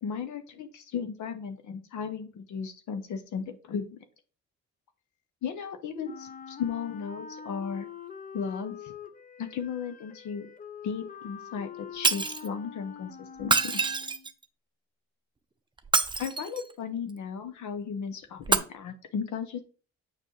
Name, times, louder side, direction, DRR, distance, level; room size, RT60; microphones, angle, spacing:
voice 1, 0.0-4.0 5.4-7.9 8.3-8.9 9.4-10.5 10.8-13.8 16.2-19.6, left 6 dB, 75° left, 7 dB, 0.8 m, -35 dB
Wind instrument woodwind instrument, 6.0-14.3, left 7 dB, 30° left, 0.6 m, -45 dB
Shatter, 12.0-12.5 13.4-14.4 15.8-16.7 18.4-18.6, right 4 dB, 15° right, 0.5 m, -26 dB
6.7 x 5.3 x 3.1 m, 0.39 s
cardioid pair, 90°, 30 cm